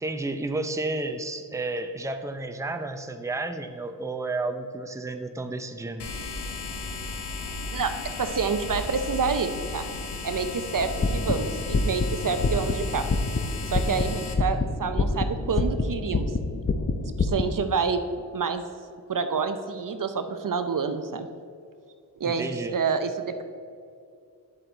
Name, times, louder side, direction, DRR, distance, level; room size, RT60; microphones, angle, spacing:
voice 1, 0.0-6.1 22.2-22.7, right 2 dB, 5° right, 7 dB, 0.7 m, -31 dB
sound 1, 6.0-14.3, left 3 dB, 70° left, 1.2 m, -35 dB
voice 2, 8.2-9.8 10.2-13.0 13.7-16.4 17.2-18.0 18.3-18.6 19.1-21.3 22.2-23.3, right 5 dB, 50° right, 8 dB, 0.8 m, -28 dB
sound 2, 10.8-17.4, left 3 dB, 30° left, 0.8 m, -27 dB
9.8 x 7.5 x 4.0 m, 2.4 s
supercardioid pair, 45°, 42 cm